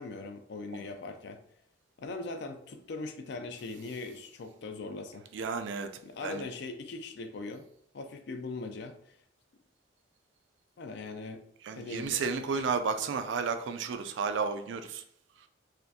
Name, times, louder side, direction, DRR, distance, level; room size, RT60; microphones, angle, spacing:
voice 1, 0.0-1.4 2.0-5.3 6.0-7.6 7.9-9.2 10.8-11.4 11.7-12.2, left 3 dB, 60° left, 0.4 m, -40 dB
voice 2, 5.3-5.9 6.2-6.4 11.6-15.0 15.4-15.5, right 5 dB, 65° right, 0.3 m, -32 dB
4.1 x 2.5 x 2.7 m
head